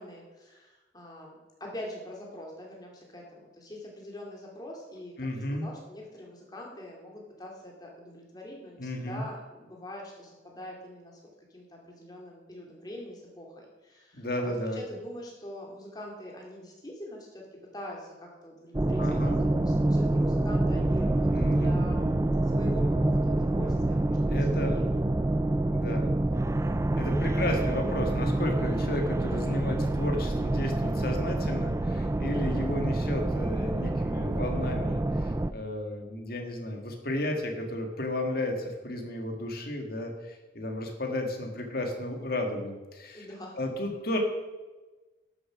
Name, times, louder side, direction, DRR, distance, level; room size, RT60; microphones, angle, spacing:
voice 1, 0.0-11.2 11.5-22.0 22.4-24.8 26.2-26.5 32.3-32.7 43.1-43.6, left 1 dB, 20° left, -1 dB, 2.5 m, -44 dB
voice 2, 5.2-5.7 8.8-9.3 14.1-14.8 19.0-19.4 21.3-21.7 24.3-24.8 25.7-26.1 27.0-43.3 43.6-44.2, left 1 dB, 50° left, 3 dB, 1.9 m, -33 dB
sound 1, 18.7-35.5, right 1 dB, 15° right, 0.3 m, -27 dB
12.5 x 7.2 x 6.0 m, 1.2 s
head